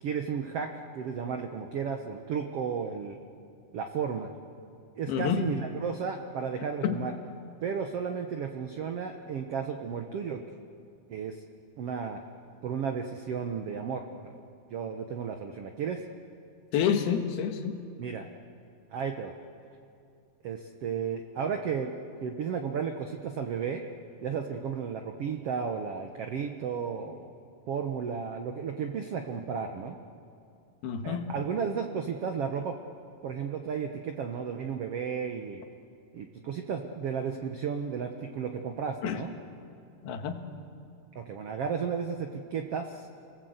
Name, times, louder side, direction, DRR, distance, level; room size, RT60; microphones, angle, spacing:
voice 1, 0.0-3.2 3.7-4.3 5.0-7.1 7.6-10.4 11.1-11.4 11.8-12.2 12.6-14.4 14.7-16.0 18.0-18.3 18.9-19.3 20.4-21.9 22.2-23.8 24.2-27.3 27.7-30.0 31.0-32.8 33.2-35.6 36.1-39.3 41.1-43.1, right 6 dB, 80° right, 5 dB, 1.3 m, -33 dB
voice 2, 5.1-5.4 6.8-7.0 16.7-17.8 30.8-31.3 39.0-39.3 40.0-40.4, left 8 dB, 90° left, 6 dB, 3.4 m, -28 dB
30.0 x 20.0 x 8.1 m, 2.5 s
omnidirectional pair, 4.4 m